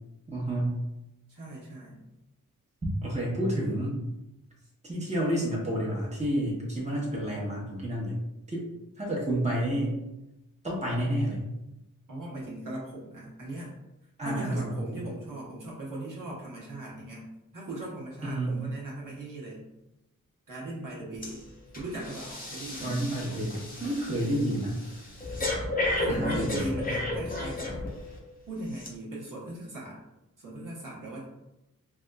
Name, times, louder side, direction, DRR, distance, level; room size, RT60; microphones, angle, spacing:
voice 1, 0.3-0.8 2.8-4.0 4.8-8.1 8.5-8.6 9.0-10.0 10.6-11.4 14.2-15.0 18.2-18.6 22.8-24.7 26.1-26.7, right 1 dB, 20° right, -4 dB, 1.0 m, -30 dB
voice 2, 1.3-2.1 12.1-13.7 14.2-17.2 17.5-19.6 20.5-21.4 21.7-23.0 26.0-27.7 28.5-30.0 30.4-31.2, right 1 dB, 65° right, -6 dB, 1.1 m, -38 dB
Breathing, 21.2-21.4 21.7-28.2 28.7-28.9, left 2 dB, 25° left, 0.7 m, -33 dB
3.4 x 2.5 x 2.3 m, 0.93 s
cardioid pair, 55°, 34 cm